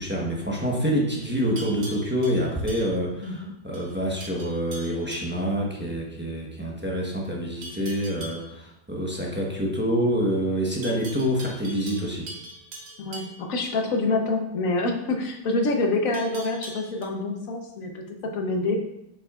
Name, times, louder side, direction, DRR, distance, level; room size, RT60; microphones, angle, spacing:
voice 1, 0.0-12.3, equal, 10° right, -2 dB, 0.7 m, -27 dB
Livestock farm animals working animals, 1.1-3.4 3.7-3.9 4.2-5.4 7.6-8.5 10.8-13.8 16.1-17.0, right 1 dB, 85° right, 1.8 m, -42 dB
voice 2, 13.0-18.0 18.3-18.8, left 2 dB, 55° left, 2 dB, 1.2 m, -26 dB
8.1 x 6.0 x 2.4 m, 0.81 s
omnidirectional pair, 1.9 m